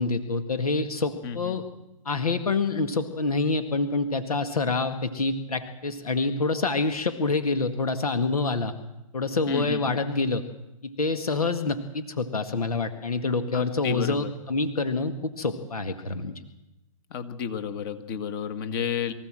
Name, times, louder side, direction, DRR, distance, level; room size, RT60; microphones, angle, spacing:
voice 1, 0.0-1.6 2.1-8.7 9.1-10.5 10.8-16.3, left 3 dB, 80° left, 9 dB, 2.0 m, -27 dB
voice 2, 1.2-1.6 9.5-10.0 13.5-14.3 17.1-19.1, left 7 dB, 40° left, 9 dB, 2.1 m, -31 dB
24.5 x 15.5 x 7.6 m, 0.97 s
hypercardioid pair, 130°, 19 cm